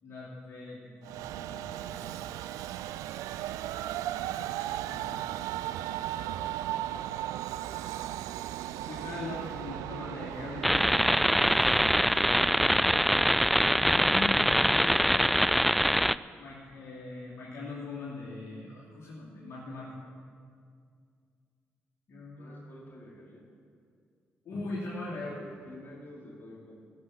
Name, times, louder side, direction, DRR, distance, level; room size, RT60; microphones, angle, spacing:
voice 1, 0.0-2.2 4.2-5.2 8.9-11.0 13.7-15.3 16.4-20.0 22.1-22.6 24.4-25.3, left 3 dB, 55° left, -7 dB, 2.9 m, -40 dB
Train, 1.0-14.5, right 13 dB, 75° right, 0.3 m, -37 dB
sound 1, 10.6-16.2, equal, ahead, 0.3 m, -24 dB
voice 2, 22.4-23.5 25.1-26.8, left 1 dB, 35° left, -3 dB, 4.3 m, -49 dB
14.5 x 7.7 x 7.4 m, 2.2 s
hypercardioid pair, 40°, 6 cm